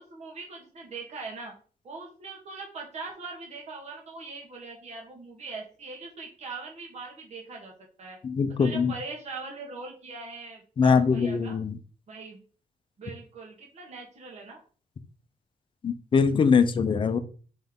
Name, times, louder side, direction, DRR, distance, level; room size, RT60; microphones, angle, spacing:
voice 1, 0.0-1.5 1.8-7.7 8.0-8.2 8.5-11.6 12.1-12.4 13.0-14.6, right 3 dB, 50° right, 1.7 m, -41 dB
voice 2, 8.2-8.9 10.8-11.7 15.8-17.2, left 5 dB, 35° left, 0.6 m, -22 dB
5.8 x 5.3 x 3.7 m
wide cardioid pair, 175°, 15 cm